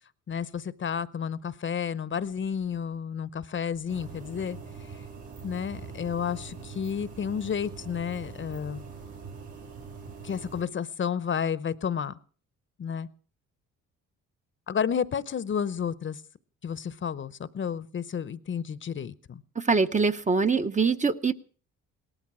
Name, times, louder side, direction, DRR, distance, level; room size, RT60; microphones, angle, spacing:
voice 1, 0.3-5.0 5.4-8.8 10.2-12.1 12.8-13.1 14.7-16.2 16.6-19.4, left 7 dB, 40° left, 18 dB, 0.8 m, -31 dB
sound 1, 3.9-10.6, right 5 dB, 80° right, 7.5 m, -43 dB
voice 2, 19.6-21.3, right 4 dB, 25° right, 9 dB, 0.8 m, -24 dB
18.0 x 13.0 x 6.1 m, 0.43 s
cardioid pair, 90°, 30 cm